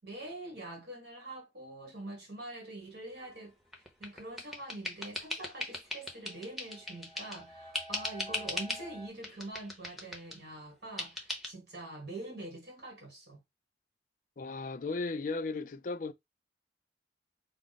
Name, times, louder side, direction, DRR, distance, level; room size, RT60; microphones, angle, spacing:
voice 1, 0.0-13.4, right 2 dB, 65° right, 1.4 m, -45 dB
sound 1, 3.2-3.8 5.7-9.1, equal, 25° right, 1.1 m, -50 dB
sound 2, 3.7-7.4 7.7-8.9 9.2-10.4 11.0-11.5, left 2 dB, ahead, 0.8 m, -39 dB
voice 2, 14.4-16.1, left 3 dB, 45° left, 0.4 m, -35 dB
4.8 x 2.0 x 4.0 m
head